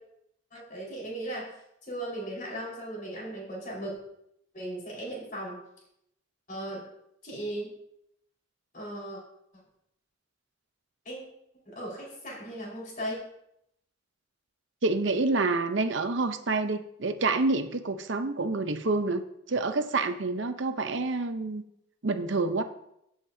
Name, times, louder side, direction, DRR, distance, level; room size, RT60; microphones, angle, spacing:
voice 1, 0.5-1.5 1.8-4.0 4.5-5.6 6.5-6.8 7.2-7.7 8.7-9.2 11.0-11.2 11.7-13.2, right 1 dB, 40° left, -4 dB, 4.6 m, -37 dB
voice 2, 14.8-19.2 19.5-21.6 22.0-22.6, right 3 dB, 65° right, 9 dB, 0.7 m, -28 dB
16.0 x 7.5 x 2.7 m, 0.78 s
head